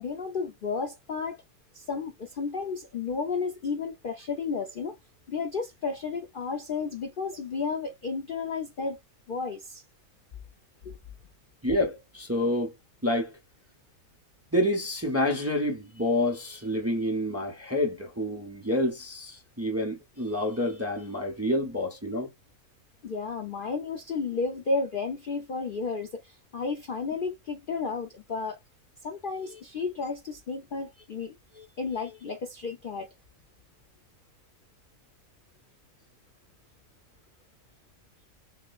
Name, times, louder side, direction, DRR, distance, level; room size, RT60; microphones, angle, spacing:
voice 1, 0.0-1.4 1.7-5.0 5.3-9.0 9.3-9.8 10.8-10.9 23.0-28.6 29.0-31.4 31.8-33.1, left 4 dB, 50° left, 0.6 m, -32 dB
voice 2, 11.6-12.7 13.0-13.4 14.5-22.3 31.6-31.7, left 1 dB, 15° right, 0.7 m, -28 dB
5.9 x 2.2 x 2.4 m
omnidirectional pair, 1.5 m